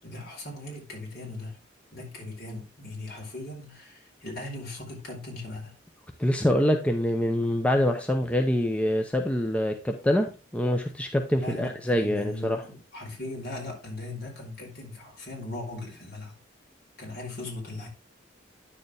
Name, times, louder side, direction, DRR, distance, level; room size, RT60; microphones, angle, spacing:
voice 1, 0.0-1.6 1.9-5.7 11.4-16.3 17.0-17.9, left 2 dB, 55° left, 4.4 m, -39 dB
voice 2, 6.2-12.6, left 1 dB, 5° left, 0.7 m, -25 dB
10.0 x 6.7 x 3.4 m
head